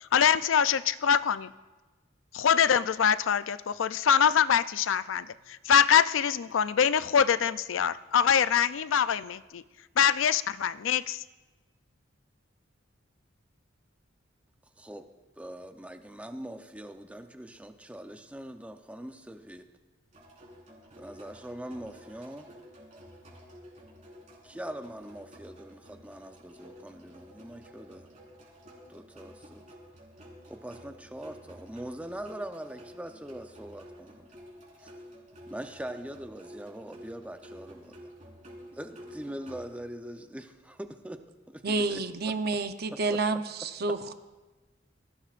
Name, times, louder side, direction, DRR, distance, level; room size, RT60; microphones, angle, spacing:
voice 1, 0.1-1.5 2.3-5.2 5.7-9.6 10.0-11.2, left 8 dB, 85° left, 15 dB, 0.4 m, -24 dB
voice 2, 14.8-15.1 15.4-19.7 21.0-22.5 24.4-28.1 28.9-29.6 30.5-34.3 34.8-34.9 35.5-38.1 38.7-42.3 42.9-43.2 43.9-44.1, right 1 dB, 5° right, 6 dB, 0.7 m, -42 dB
sound 1, 20.1-39.6, equal, 40° right, 4.6 m, -51 dB
voice 3, 41.6-44.0, right 3 dB, 55° right, 8 dB, 0.8 m, -29 dB
20.0 x 16.0 x 2.5 m, 1.2 s
head